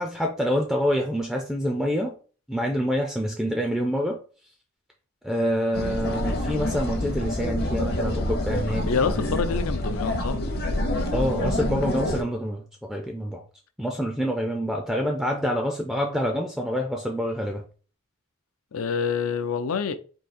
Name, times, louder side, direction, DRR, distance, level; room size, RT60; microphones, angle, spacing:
voice 1, 0.0-2.1 2.5-4.2 5.2-9.2 11.1-13.4 13.8-17.6, equal, ahead, 0.4 m, -27 dB
sound 1, 5.7-12.2, left 1 dB, 45° left, 0.8 m, -27 dB
voice 2, 8.8-10.4 18.7-20.0, left 5 dB, 75° left, 0.5 m, -26 dB
3.8 x 2.7 x 4.2 m
head